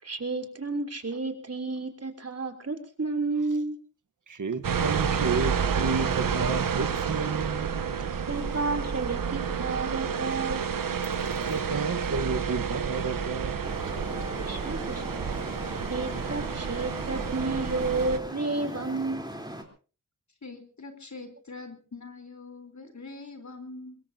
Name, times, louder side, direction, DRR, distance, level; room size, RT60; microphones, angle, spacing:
voice 1, 0.0-3.8 8.3-10.7 14.4-15.2 15.9-19.4, right 3 dB, 50° right, 5 dB, 3.3 m, -31 dB
voice 2, 4.3-7.9 11.5-13.7 14.1-14.2, right 4 dB, 65° right, 8 dB, 1.3 m, -31 dB
sound 1, 4.6-18.2, right 6 dB, 90° right, 1.1 m, -30 dB
Traffic noise roadway noise, 13.6-19.6, right 1 dB, 15° right, 3.6 m, -39 dB
voice 3, 20.4-24.0, left 3 dB, 60° left, 5 dB, 3.8 m, -43 dB
23.5 x 22.0 x 2.8 m, 0.37 s
cardioid pair, 55°, 32 cm